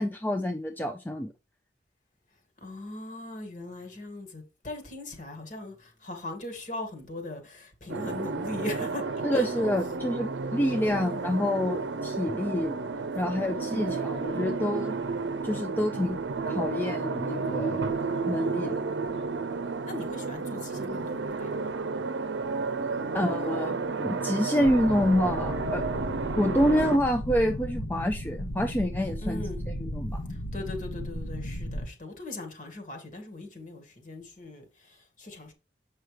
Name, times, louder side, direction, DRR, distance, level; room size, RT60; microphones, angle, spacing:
voice 1, 0.0-1.3 9.2-12.8 13.1-14.9 15.4-16.2 16.4-17.9 18.3-18.8 23.1-25.8 26.4-29.4 29.7-30.2, left 1 dB, 10° left, 0.4 m, -27 dB
voice 2, 2.6-9.0 9.3-9.5 10.8-11.2 13.7-14.1 19.8-21.7 29.2-29.6 30.3-35.5, left 2 dB, 45° left, 1.9 m, -39 dB
sound 1, 7.9-27.0, right 4 dB, 85° right, 0.6 m, -32 dB
sound 2, 24.6-31.9, equal, 60° left, 0.8 m, -35 dB
7.8 x 5.6 x 3.3 m
head